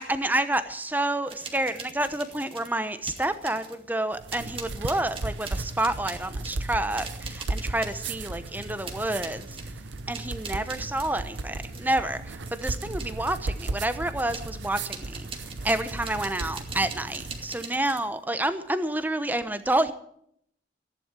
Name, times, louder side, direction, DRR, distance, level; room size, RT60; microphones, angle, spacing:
voice 1, 0.0-9.5 10.1-15.2 15.6-19.9, right 1 dB, 10° right, 11 dB, 1.0 m, -29 dB
sound 1, 1.3-2.7 3.0-3.9 4.3-13.8 14.3-18.1, right 4 dB, 30° right, 2.3 m, -43 dB
sound 2, 4.1-17.6, right 2 dB, 75° right, 0.9 m, -36 dB
15.0 x 11.0 x 8.3 m, 0.69 s
head